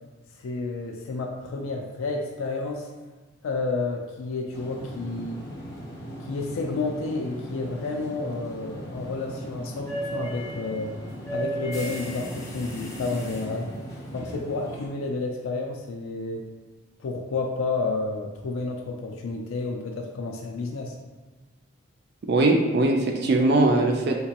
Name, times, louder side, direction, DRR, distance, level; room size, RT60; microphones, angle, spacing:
voice 1, 0.4-2.9 3.4-5.4 6.3-10.9 11.3-13.7 14.1-16.5 17.0-20.9, left 3 dB, 85° left, 1 dB, 0.4 m, -30 dB
sound 1, 4.5-14.9, right 1 dB, 15° left, 0.7 m, -36 dB
voice 2, 22.3-24.1, right 2 dB, 50° right, 2 dB, 0.3 m, -20 dB
3.5 x 2.9 x 2.8 m, 1.3 s
head